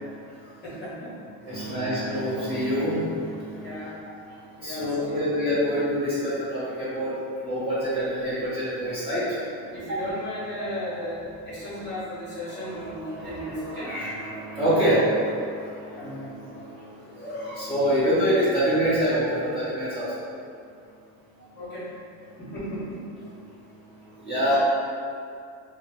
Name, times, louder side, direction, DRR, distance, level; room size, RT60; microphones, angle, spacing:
voice 1, 0.6-1.2 3.6-3.9 4.6-5.2 9.7-13.9 15.9-16.4 21.5-21.9 22.4-23.0, left 1 dB, 25° left, -11 dB, 0.9 m, -35 dB
voice 2, 1.4-3.9 4.6-7.1 7.4-9.4 9.9-10.0 10.6-11.0 12.5-16.1 16.5-16.6 17.2-20.1 24.2-24.6, equal, 15° right, -13 dB, 0.8 m, -26 dB
2.7 x 2.0 x 2.9 m, 2.4 s
cardioid pair, 145°, 39 cm